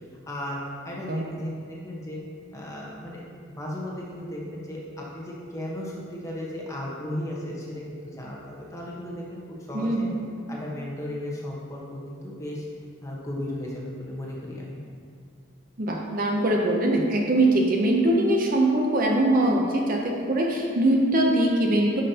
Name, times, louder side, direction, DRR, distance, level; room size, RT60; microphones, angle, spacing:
voice 1, 0.3-2.2 2.5-9.4 9.7-10.0 10.5-12.7 13.0-14.8, left 1 dB, 15° left, -4 dB, 1.1 m, -35 dB
voice 2, 9.7-10.1 15.8-22.0, right 1 dB, 45° right, 0 dB, 0.6 m, -22 dB
11.0 x 5.4 x 2.8 m, 2.3 s
head